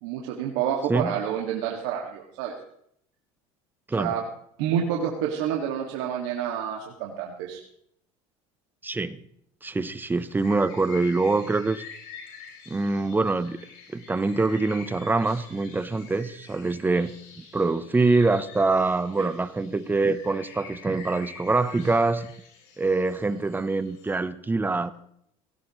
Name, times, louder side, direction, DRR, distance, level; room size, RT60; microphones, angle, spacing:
voice 1, 0.0-2.5 4.0-4.2 4.6-7.6 19.2-19.3, right 9 dB, 80° right, -1 dB, 2.1 m, -28 dB
voice 2, 8.8-9.2 9.6-11.8 12.7-13.6 13.9-22.3 22.8-24.9, right 3 dB, 15° right, 14 dB, 0.8 m, -24 dB
sound 1, 9.8-24.2, left 6 dB, 70° left, 5.7 m, -47 dB
17.5 x 17.0 x 3.2 m, 0.70 s
supercardioid pair, 115°, 15 cm